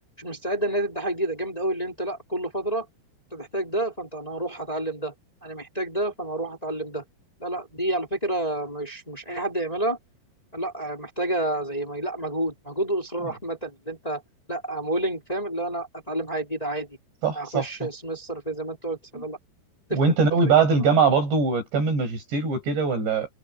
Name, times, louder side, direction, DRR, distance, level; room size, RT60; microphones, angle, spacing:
voice 1, 0.2-2.8 3.3-5.1 5.4-7.0 7.4-10.0 10.5-14.2 14.5-16.9 17.3-19.4 19.9-20.1 20.4-20.9, right 1 dB, 10° left, 4.4 m, -29 dB
voice 2, 17.2-17.7 19.1-19.2 19.9-23.3, right 5 dB, 70° right, 8.8 m, -22 dB
omnidirectional pair, 5.2 m